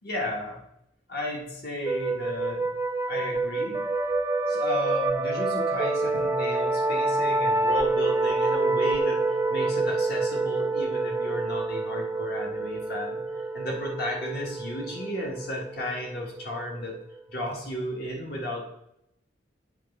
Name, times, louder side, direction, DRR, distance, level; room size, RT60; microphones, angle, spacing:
voice 1, 0.0-0.6 1.1-2.7 3.1-3.8 4.5-16.9 17.3-18.6, equal, 60° left, -1 dB, 1.6 m, -34 dB
sound 1, 1.9-17.2, right 2 dB, 15° right, 0.3 m, -27 dB
8.0 x 3.5 x 5.5 m, 0.79 s
head